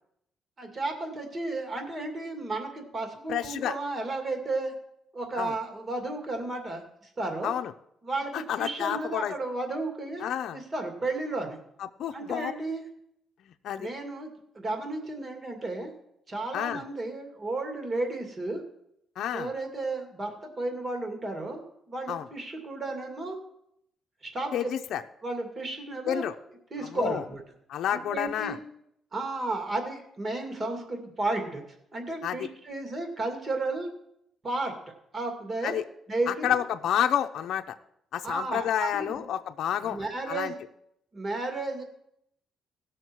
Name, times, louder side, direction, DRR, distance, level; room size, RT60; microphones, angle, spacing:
voice 1, 0.6-4.7 5.1-6.8 7.2-7.5 8.0-10.2 10.5-11.6 12.1-12.8 13.8-14.3 14.5-15.9 16.3-18.6 19.3-21.6 21.9-23.4 24.2-24.5 25.2-26.2 26.7-27.4 27.9-28.6 29.1-31.6 31.9-33.9 34.4-34.7 35.1-35.7 36.1-36.6 38.2-39.2 39.8-40.5 41.1-41.8, right 2 dB, 35° right, 4 dB, 2.3 m, -33 dB
voice 2, 3.3-3.8 5.4-5.5 7.4-7.7 8.3-9.3 10.2-10.6 11.8-12.5 13.6-13.9 16.5-16.8 19.2-19.5 22.1-22.2 24.5-25.0 26.1-26.4 26.8-27.2 27.7-28.6 32.2-32.5 35.6-35.8 36.3-37.7 38.1-40.5, left 10 dB, 75° left, 7 dB, 0.6 m, -29 dB
17.0 x 6.4 x 4.6 m, 0.75 s
cardioid pair, 90°, 0 cm